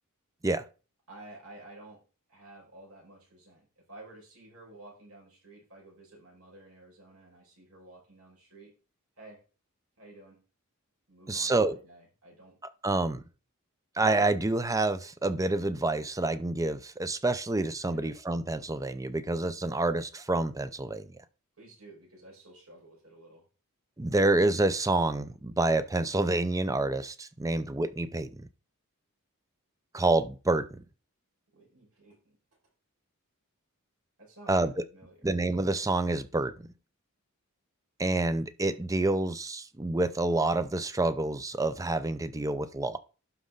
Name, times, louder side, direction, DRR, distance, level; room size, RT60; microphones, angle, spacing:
voice 1, 1.1-2.0 2.3-8.7 9.2-9.4 10.0-10.4 11.1-12.6 17.9-18.1 21.6-23.4 31.5-32.4 34.2-35.3, right 2 dB, 75° right, 5.7 m, -52 dB
voice 2, 11.3-11.8 12.8-13.2 14.0-21.1 24.0-28.5 29.9-30.8 34.5-34.7 35.2-36.5 38.0-43.0, right 2 dB, 15° right, 0.6 m, -28 dB
11.5 x 5.3 x 3.9 m
head